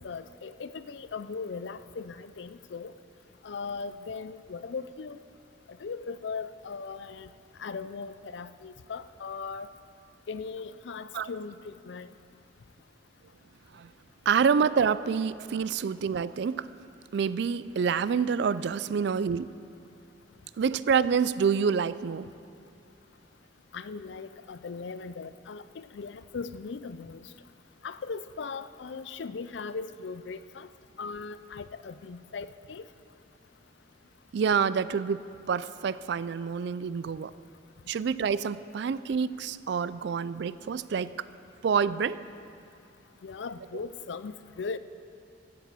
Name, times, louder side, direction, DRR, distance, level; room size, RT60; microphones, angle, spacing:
voice 1, 0.0-2.9 3.4-5.2 5.7-7.3 7.6-9.7 10.3-12.1 23.7-27.3 27.8-30.7 31.0-32.8 43.2-44.8, left 5 dB, 70° left, 13 dB, 0.5 m, -38 dB
voice 2, 14.3-16.7 17.1-19.5 20.6-22.3 34.3-35.2 35.5-37.3 37.9-41.2 41.6-42.2, right 6 dB, 65° right, 17 dB, 0.3 m, -27 dB
15.5 x 7.5 x 6.9 m, 2.6 s
head